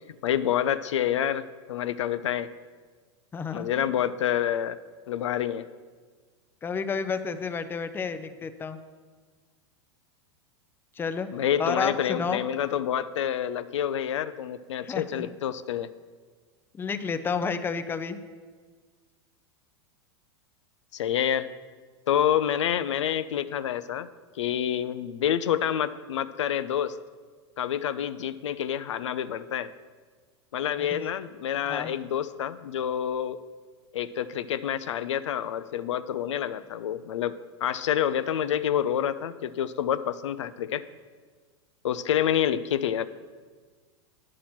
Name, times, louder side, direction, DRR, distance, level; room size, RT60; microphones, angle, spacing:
voice 1, 0.2-2.5 3.5-4.8 5.1-5.7 11.3-15.9 20.9-21.5 22.1-24.1 24.4-27.0 27.6-29.7 30.5-33.4 33.9-37.3 37.6-40.8 41.8-43.1, left 10 dB, 85° left, 13 dB, 0.5 m, -28 dB
voice 2, 3.3-3.9 6.6-8.8 11.0-11.3 11.6-12.4 14.8-15.3 16.7-18.2 30.8-31.1 31.7-32.0, left 5 dB, 15° left, 9 dB, 0.5 m, -31 dB
9.8 x 7.3 x 4.3 m, 1.5 s
hypercardioid pair, 120°, 15 cm